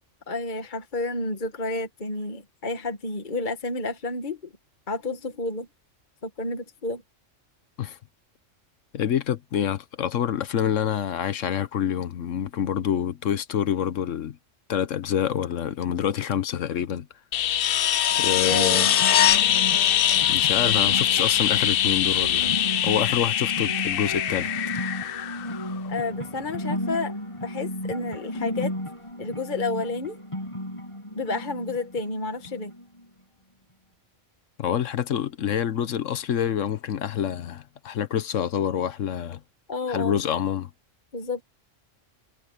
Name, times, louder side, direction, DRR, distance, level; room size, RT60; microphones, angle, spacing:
voice 1, 0.3-4.5 4.9-5.7 6.2-7.0 18.4-18.9 25.9-27.1 27.4-28.8 29.2-30.2 31.1-32.7 39.7-40.2 41.1-41.4, left 2 dB, 40° left, 1.7 m, -30 dB
voice 2, 8.9-14.4 14.7-17.1 18.2-18.9 20.3-22.6 22.8-24.5 34.6-39.4 39.9-40.7, left 9 dB, 90° left, 1.3 m, -27 dB
sound 1, 17.3-26.0 28.3-28.4, left 11 dB, 60° left, 0.7 m, -22 dB
sound 2, 18.1-33.1, equal, 25° left, 5.1 m, -34 dB
omnidirectional pair, 1.3 m